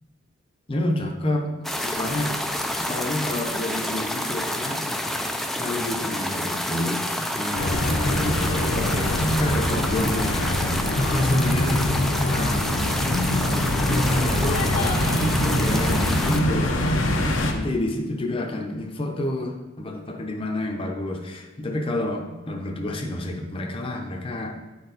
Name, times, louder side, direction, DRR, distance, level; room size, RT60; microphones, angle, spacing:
voice 1, 0.7-2.3 2.8-4.9 5.6-10.4 10.8-11.9 12.3-12.9 13.2-24.6, left 1 dB, 25° left, 2 dB, 0.7 m, -30 dB
sound 1, 1.6-16.4, left 1 dB, ahead, 0.3 m, -29 dB
sound 2, 7.6-17.5, left 1 dB, 85° left, 0.8 m, -23 dB
9.0 x 4.3 x 4.0 m, 1.1 s
head